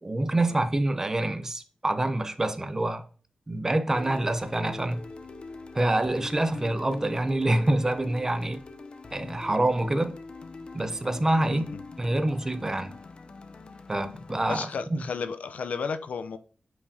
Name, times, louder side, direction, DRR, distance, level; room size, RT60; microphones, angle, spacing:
voice 1, 0.0-3.1 3.5-5.0 5.7-8.6 9.1-10.2 10.7-11.7 12.0-12.9 13.9-15.0, right 1 dB, 20° right, 0.7 m, -26 dB
sound 1, 3.9-14.6, left 3 dB, 45° left, 0.7 m, -43 dB
voice 2, 11.4-11.8 14.5-16.4, left 5 dB, 90° left, 0.6 m, -33 dB
8.6 x 5.0 x 2.8 m
wide cardioid pair, 130°, 2 cm